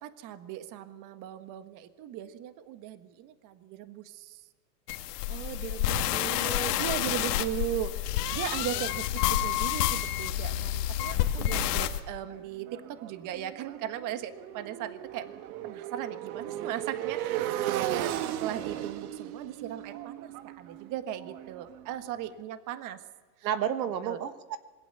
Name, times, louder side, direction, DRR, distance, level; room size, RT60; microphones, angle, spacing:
voice 1, 0.0-4.4 6.8-15.3 15.6-18.1 18.4-23.0 23.4-23.5 24.0-24.2, right 11 dB, 35° right, 10 dB, 1.6 m, -38 dB
sound 1, 4.9-12.0, left 12 dB, 70° left, 2.0 m, -29 dB
voice 2, 5.3-6.9 8.7-8.8 11.4-11.6 17.7-18.1 23.4-24.6, right 9 dB, 90° right, 10 dB, 1.6 m, -35 dB
Motorcycle, 12.3-22.1, right 12 dB, 60° right, 1.6 m, -36 dB
26.5 x 20.5 x 6.9 m, 1.3 s
hypercardioid pair, 125°, 50 cm